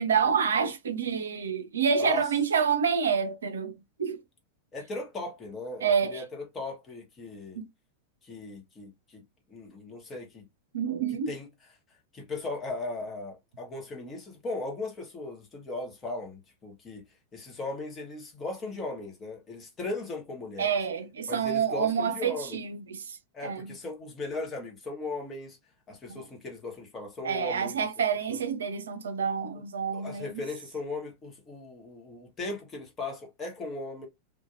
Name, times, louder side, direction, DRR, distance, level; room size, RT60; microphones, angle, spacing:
voice 1, 0.0-4.2 5.8-6.2 7.6-7.7 10.7-11.3 20.6-23.2 23.4-23.7 26.1-26.2 27.2-30.4, right 6 dB, 65° right, 0.4 m, -28 dB
voice 2, 2.0-2.3 4.7-7.6 8.2-9.2 9.5-10.5 11.3-11.5 12.1-20.7 21.3-22.6 23.3-25.6 25.9-27.9 28.3-28.4 29.5-29.6 29.9-34.1, left 2 dB, 20° left, 1.1 m, -37 dB
2.6 x 2.1 x 2.5 m
figure-of-eight pair, 90°, 0 cm